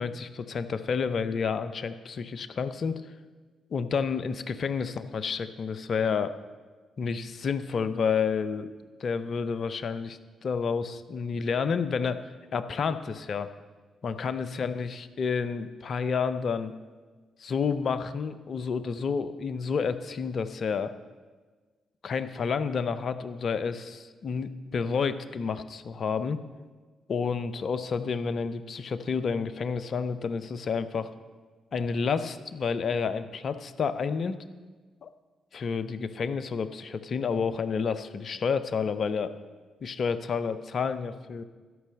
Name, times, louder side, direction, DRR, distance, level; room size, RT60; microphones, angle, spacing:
voice 1, 0.0-3.0 3.7-6.3 7.0-8.7 9.0-12.2 12.5-13.5 14.0-16.8 17.4-20.9 22.0-26.4 27.1-31.1 31.7-34.4 35.0-35.1 35.5-39.3 39.8-41.4, left 5 dB, 55° left, 12 dB, 0.6 m, -30 dB
12.5 x 5.4 x 6.2 m, 1.4 s
hypercardioid pair, 40°, 0 cm